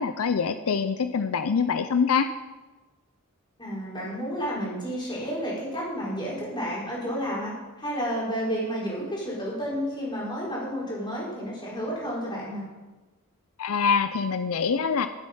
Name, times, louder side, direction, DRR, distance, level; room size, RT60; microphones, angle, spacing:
voice 1, 0.0-2.3 13.6-15.1, left 6 dB, 75° left, 10 dB, 0.5 m, -24 dB
voice 2, 3.6-7.5 7.8-12.6, equal, 20° left, -6 dB, 5.1 m, -31 dB
12.5 x 9.0 x 5.4 m, 1.2 s
head